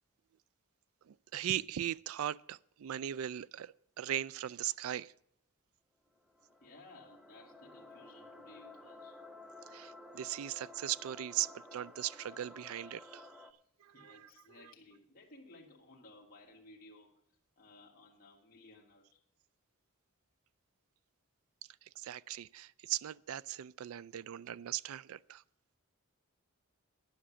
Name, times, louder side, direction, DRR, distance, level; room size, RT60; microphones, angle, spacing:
voice 1, 1.1-5.1 9.7-13.3 13.8-14.3 14.6-14.7 22.0-25.4, right 11 dB, 75° right, 0.3 m, -39 dB
sound 1, 6.1-13.5, left 2 dB, ahead, 0.6 m, -53 dB
voice 2, 6.6-9.2 13.9-17.2 17.6-19.2, left 2 dB, 45° left, 1.7 m, -58 dB
10.0 x 6.0 x 8.3 m
head